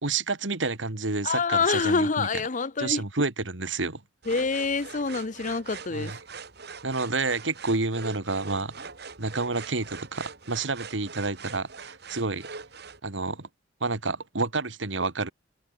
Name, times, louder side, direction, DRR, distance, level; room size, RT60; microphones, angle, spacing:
voice 1, 0.0-2.3 2.8-4.0 5.9-6.2 6.8-8.7 9.2-12.5 13.0-13.5 13.8-15.3, right 3 dB, 80° right, 2.2 m, -29 dB
voice 2, 1.2-3.0 4.3-6.1, left 4 dB, 45° left, 0.8 m, -26 dB
sound 1, 4.2-13.0, right 5 dB, 60° right, 4.2 m, -43 dB
head